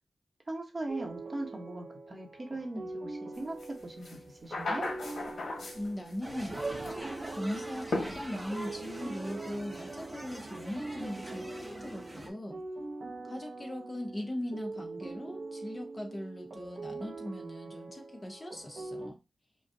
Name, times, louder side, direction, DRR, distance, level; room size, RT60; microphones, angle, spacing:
voice 1, 0.5-4.9, right 2 dB, 35° right, 1.1 m, -39 dB
sound 1, 0.9-19.1, right 3 dB, 55° right, 0.8 m, -43 dB
sound 2, 3.6-3.7 4.0-6.1 6.4-7.0 7.9-8.7, left 2 dB, 80° left, 1.2 m, -36 dB
voice 2, 5.7-6.6 6.9-12.6 13.2-19.2, left 1 dB, 25° left, 0.9 m, -39 dB
sound 3, 6.2-12.3, right 1 dB, 15° right, 1.0 m, -42 dB
5.3 x 2.4 x 2.7 m
wide cardioid pair, 100°, 0 cm